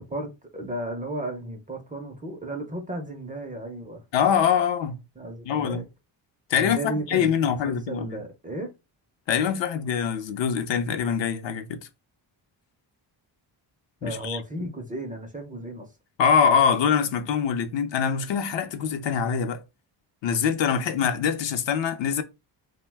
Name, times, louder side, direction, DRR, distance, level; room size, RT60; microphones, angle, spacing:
voice 1, 0.0-4.0 5.2-5.8 6.6-8.7 14.0-15.9, right 1 dB, 20° right, 0.4 m, -34 dB
voice 2, 4.1-5.0 5.5-5.8 6.5-8.2 9.3-11.9 14.0-14.4 16.2-19.6 20.2-22.2, left 7 dB, 65° left, 0.6 m, -24 dB
2.7 x 2.1 x 3.2 m
cardioid pair, 115°, 48 cm